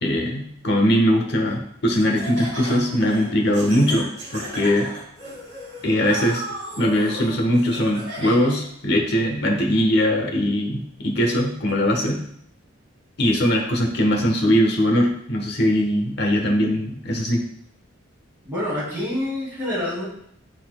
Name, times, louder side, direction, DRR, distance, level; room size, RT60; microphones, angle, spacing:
voice 1, 0.0-4.9 5.8-6.4 6.8-12.2 13.2-17.4, equal, 55° left, 2 dB, 1.1 m, -21 dB
Laughter, 1.9-8.7, right 1 dB, 65° right, 2.7 m, -36 dB
voice 2, 18.4-20.0, left 1 dB, 10° right, -9 dB, 2.7 m, -27 dB
10.5 x 4.1 x 2.3 m, 0.69 s
head